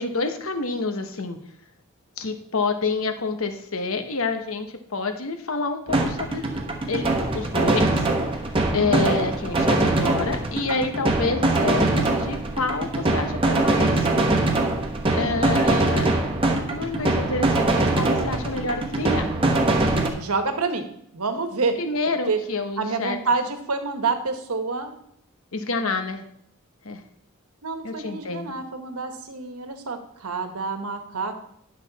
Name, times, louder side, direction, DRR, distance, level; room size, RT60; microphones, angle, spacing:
voice 1, 0.0-1.4 2.2-6.6 6.9-8.1 8.7-14.1 15.1-16.2 16.7-19.3 21.8-23.2 25.5-26.2 26.8-27.0 27.8-28.5, left 3 dB, 70° left, 7 dB, 1.0 m, -28 dB
sound 1, 5.9-20.1, right 2 dB, 25° right, 1.0 m, -22 dB
voice 2, 8.8-9.2 20.2-20.9 21.1-21.8 22.3-22.4 22.8-24.9 27.6-31.5, right 4 dB, 85° right, 7 dB, 1.2 m, -27 dB
10.5 x 6.5 x 4.1 m, 0.70 s
head